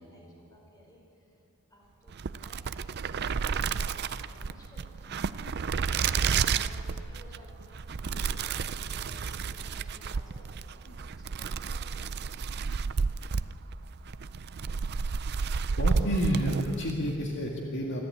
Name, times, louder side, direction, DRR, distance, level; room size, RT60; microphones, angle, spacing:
voice 1, 0.0-1.4 1.7-2.6 3.0-5.2 6.1-12.2, equal, 15° left, -2 dB, 5.2 m, -56 dB
sound 1, 2.1-17.0, right 5 dB, 50° right, 0.5 m, -31 dB
voice 2, 15.8-18.0, equal, 55° left, -1 dB, 1.9 m, -31 dB
25.0 x 13.0 x 8.5 m, 2.8 s
head